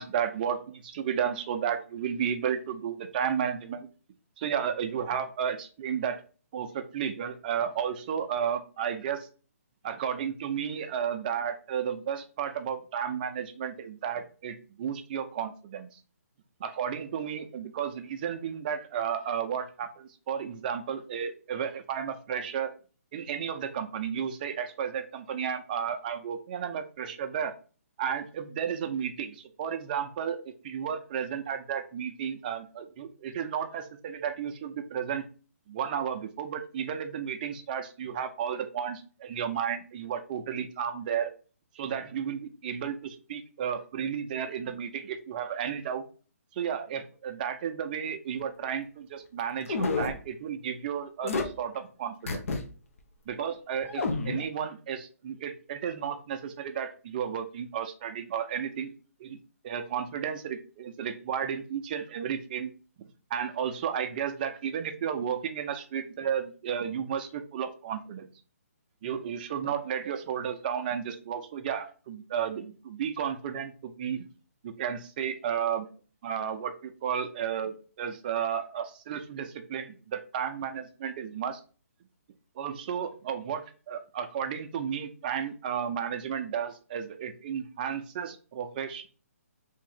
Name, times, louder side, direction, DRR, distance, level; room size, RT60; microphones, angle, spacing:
voice 1, 0.0-3.9 4.4-6.2 6.5-9.3 9.8-16.0 16.6-22.7 23.1-27.5 28.0-35.3 35.7-41.3 41.7-46.0 46.5-52.5 53.3-58.9 59.2-59.4 59.6-62.7 63.0-68.3 69.0-74.2 74.6-75.9 76.2-81.6 82.6-89.1, right 8 dB, 35° right, 7 dB, 0.5 m, -33 dB
sound 1, 49.7-50.2 51.2-51.5 52.3-52.6 53.0-53.1 53.8-54.4, left 3 dB, 60° left, 0.7 m, -29 dB
2.8 x 2.6 x 4.0 m, 0.37 s
hypercardioid pair, 150°, 8 cm